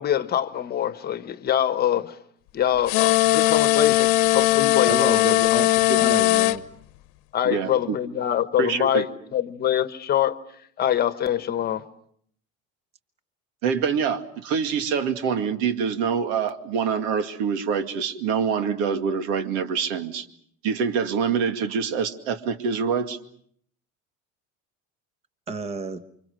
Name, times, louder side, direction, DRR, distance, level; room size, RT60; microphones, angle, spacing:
voice 1, 0.0-2.1 2.5-6.1 7.3-10.4 10.8-11.8, left 10 dB, 30° left, 1.1 m, -24 dB
sound 1, 2.9-6.6, left 18 dB, 85° left, 1.1 m, -19 dB
voice 2, 4.9-6.6 25.5-26.0, right 3 dB, 20° right, 1.1 m, -31 dB
voice 3, 7.4-8.0 8.6-9.0 13.6-20.3 20.6-23.2, right 6 dB, 85° right, 2.3 m, -25 dB
29.0 x 25.5 x 6.4 m
cardioid pair, 165°, 30 cm